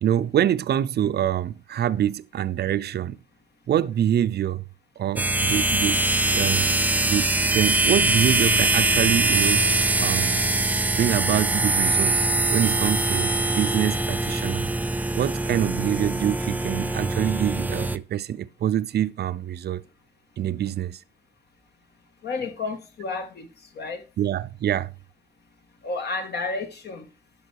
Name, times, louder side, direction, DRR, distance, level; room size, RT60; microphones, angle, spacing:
voice 1, 0.0-3.2 3.7-4.6 5.0-6.0 6.3-6.7 7.0-9.6 10.0-10.4 10.9-12.2 12.5-14.7 15.1-19.8 20.4-21.0 24.2-24.9, right 10 dB, 55° right, 0.6 m, -25 dB
sound 1, 5.2-18.0, right 2 dB, 10° right, 0.5 m, -23 dB
voice 2, 22.2-23.5 23.8-24.0 25.8-27.1, left 3 dB, 55° left, 1.9 m, -31 dB
12.0 x 5.1 x 4.7 m
cardioid pair, 90°, 20 cm